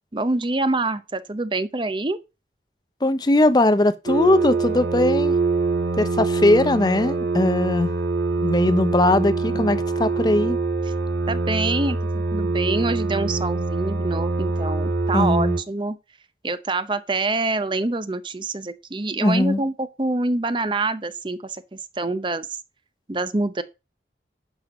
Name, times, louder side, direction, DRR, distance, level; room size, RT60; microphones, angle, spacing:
voice 1, 0.1-2.2 9.2-9.7 11.3-16.0 16.4-22.5 23.1-23.6, right 2 dB, 25° right, 0.7 m, -26 dB
voice 2, 3.0-5.3 6.0-7.9 8.4-10.6 15.1-15.6 19.2-19.6, left 1 dB, 25° left, 0.5 m, -20 dB
sound 1, 4.1-15.6, right 3 dB, 65° right, 1.3 m, -24 dB
11.0 x 4.6 x 6.1 m
head